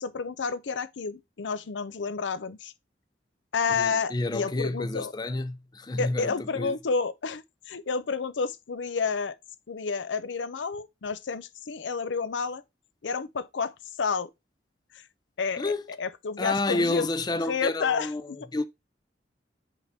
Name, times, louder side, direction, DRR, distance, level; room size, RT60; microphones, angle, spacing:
voice 1, 0.0-2.7 3.5-5.1 6.0-9.4 9.7-12.6 13.0-14.3 14.9-15.0 15.4-15.6 16.0-17.1 17.3-18.4, left 5 dB, 80° left, 0.6 m, -30 dB
voice 2, 3.8-6.8 15.6-15.9 16.4-18.7, left 2 dB, 20° left, 0.5 m, -30 dB
8.2 x 3.5 x 4.1 m
head